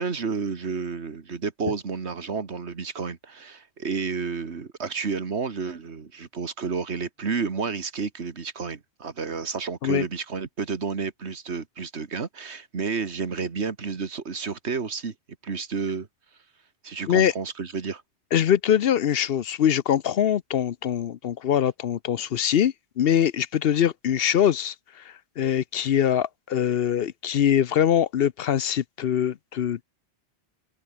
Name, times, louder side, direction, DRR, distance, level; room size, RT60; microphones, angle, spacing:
voice 1, 0.0-15.1 15.4-16.1 16.8-18.0, right 5 dB, 80° right, 2.0 m, -31 dB
voice 2, 18.3-29.8, left 9 dB, 65° left, 0.8 m, -23 dB
omnidirectional pair, 1.1 m